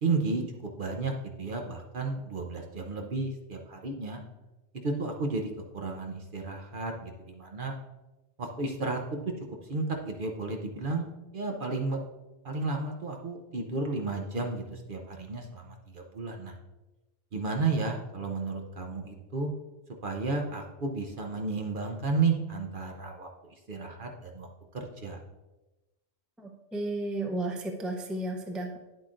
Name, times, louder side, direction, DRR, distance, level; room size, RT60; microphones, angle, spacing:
voice 1, 0.0-0.4 0.8-1.1 1.4-4.2 4.8-7.8 8.4-9.3 9.7-12.0 12.4-16.5 17.3-19.5 20.0-24.5 24.7-25.2, right 3 dB, 50° right, 2 dB, 0.9 m, -32 dB
voice 2, 26.4-28.8, right 2 dB, ahead, 3 dB, 0.5 m, -33 dB
9.5 x 7.8 x 2.5 m, 1.1 s
omnidirectional pair, 1.3 m